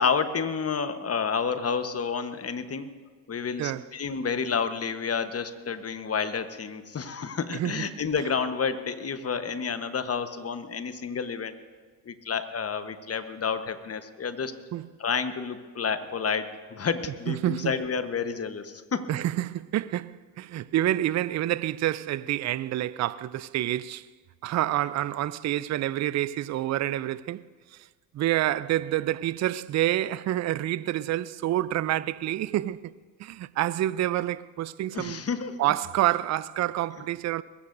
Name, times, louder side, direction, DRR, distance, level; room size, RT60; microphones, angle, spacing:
voice 1, 0.0-2.9 3.3-11.5 12.0-14.5 15.0-19.1 34.9-35.7, left 6 dB, 30° left, 1.2 m, -30 dB
voice 2, 7.5-7.8 14.7-14.9 17.3-17.8 19.1-24.1 24.4-27.5 27.7-27.9 28.1-32.9 33.2-35.2 35.6-37.4, right 13 dB, 35° right, 0.5 m, -28 dB
21.5 x 15.5 x 2.6 m
hypercardioid pair, 60°, 50 cm